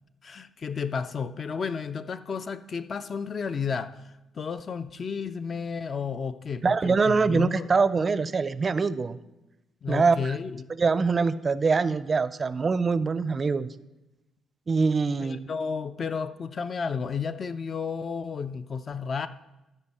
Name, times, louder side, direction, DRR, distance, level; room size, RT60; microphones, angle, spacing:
voice 1, 0.2-7.7 9.8-10.7 15.2-19.3, left 5 dB, 45° left, 11 dB, 0.4 m, -32 dB
voice 2, 6.6-9.2 9.9-10.3 10.8-13.7 14.7-15.5, right 4 dB, 35° right, 16 dB, 0.4 m, -24 dB
13.0 x 5.4 x 4.2 m, 0.99 s
cardioid pair, 90°, 0 cm